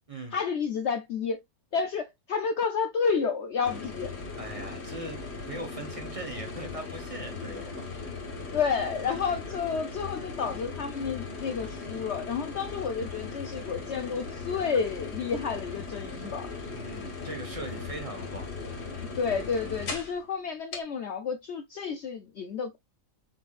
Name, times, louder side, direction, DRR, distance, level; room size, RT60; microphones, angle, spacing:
voice 1, 0.3-1.4 1.7-4.1 8.5-16.5 19.1-22.8, left 6 dB, 90° left, 0.6 m, -30 dB
sound 1, 3.6-20.2 20.7-20.8, left 4 dB, 40° left, 1.4 m, -38 dB
voice 2, 4.4-7.8 16.7-18.5, right 1 dB, 25° right, 1.0 m, -40 dB
4.7 x 4.2 x 2.4 m
omnidirectional pair, 1.8 m